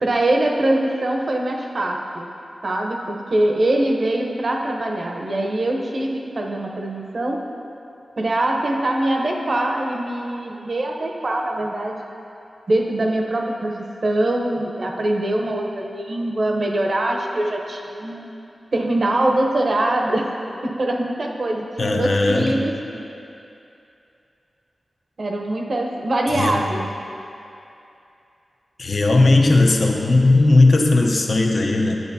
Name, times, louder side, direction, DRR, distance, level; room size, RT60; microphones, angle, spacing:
voice 1, 0.0-2.3 2.6-7.4 8.2-12.0 12.7-18.3 18.7-20.3 20.6-23.0 25.2-26.8, right 1 dB, 55° right, 1 dB, 0.8 m, -23 dB
voice 2, 21.8-22.6 26.3-26.6 28.8-32.0, left 2 dB, 55° left, 1 dB, 0.7 m, -17 dB
10.5 x 7.6 x 2.7 m, 2.8 s
wide cardioid pair, 85°, 0 cm